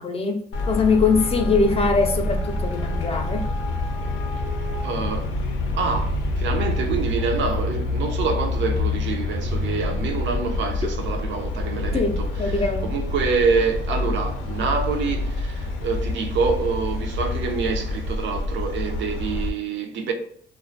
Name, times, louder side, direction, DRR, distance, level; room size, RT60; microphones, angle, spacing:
voice 1, 0.0-3.5 11.9-12.9, left 4 dB, 30° left, 0.4 m, -22 dB
Traffic noise roadway noise, 0.5-19.5, left 2 dB, 90° left, 0.5 m, -27 dB
voice 2, 4.8-5.3 5.8-20.1, right 5 dB, 70° right, 0.4 m, -26 dB
2.3 x 2.2 x 2.5 m
cardioid pair, 90°, 20 cm